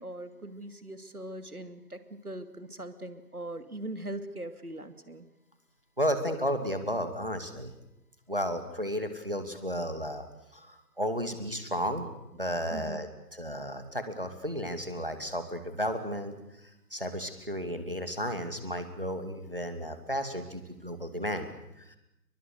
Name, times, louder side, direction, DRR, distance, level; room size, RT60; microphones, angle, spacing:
voice 1, 0.0-5.3 12.7-13.0, right 1 dB, 60° right, 10 dB, 2.6 m, -41 dB
voice 2, 6.0-7.7 8.3-10.3 10.5-12.1 12.3-16.3 16.9-21.5 21.8-22.0, equal, 35° right, 8 dB, 2.6 m, -33 dB
29.5 x 24.0 x 6.8 m, 0.88 s
figure-of-eight pair, 180°, 50 cm